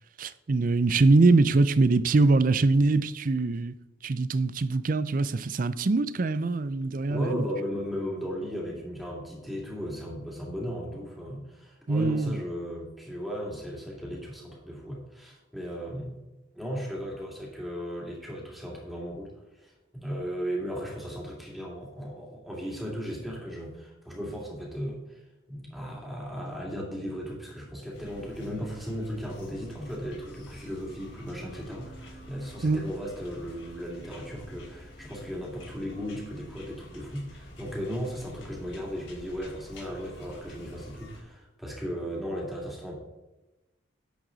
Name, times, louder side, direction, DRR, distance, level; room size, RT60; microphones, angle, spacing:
voice 1, 0.2-3.7 4.0-7.4 11.9-12.4 32.6-32.8, right 3 dB, 45° right, 0.5 m, -23 dB
voice 2, 7.1-16.2 16.5-25.2 25.5-43.0, equal, ahead, 2.7 m, -36 dB
sound 1, 27.9-41.2, left 1 dB, 85° left, 3.4 m, -48 dB
10.5 x 7.7 x 4.0 m
head